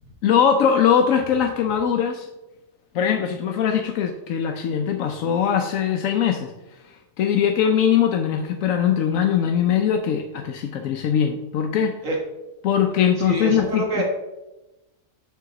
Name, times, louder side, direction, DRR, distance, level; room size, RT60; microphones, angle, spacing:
voice 1, 0.2-2.3 2.9-6.5 7.2-12.0 12.6-14.0, left 8 dB, 80° left, 4 dB, 1.0 m, -21 dB
voice 2, 13.2-14.0, right 2 dB, 80° right, -1 dB, 2.1 m, -26 dB
6.9 x 3.9 x 5.9 m, 1.0 s
omnidirectional pair, 1.4 m